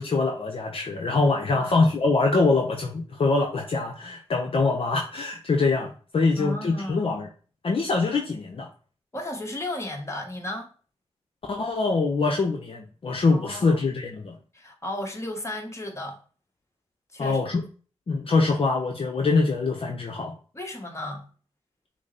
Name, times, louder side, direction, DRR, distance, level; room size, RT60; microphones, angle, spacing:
voice 1, 0.0-7.3 7.6-8.7 11.5-14.3 17.2-17.6 18.1-20.3, left 3 dB, 55° left, 0.8 m, -24 dB
voice 2, 6.4-7.0 9.1-10.7 13.3-13.8 14.5-16.2 17.1-17.4 20.5-21.3, left 1 dB, 25° left, 1.4 m, -34 dB
6.0 x 2.1 x 4.0 m
cardioid pair, 55°, 11 cm